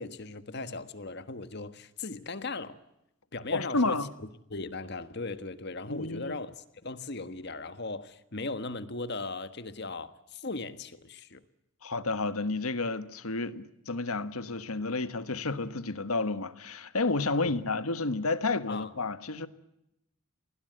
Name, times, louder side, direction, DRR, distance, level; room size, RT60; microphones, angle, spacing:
voice 1, 0.0-2.8 3.3-4.1 4.5-6.5 6.8-11.4 17.4-17.5 18.7-18.9, left 3 dB, 50° left, 1.5 m, -38 dB
voice 2, 3.5-4.1 5.9-6.4 11.8-19.5, left 3 dB, 80° left, 1.4 m, -31 dB
28.0 x 20.5 x 8.0 m
head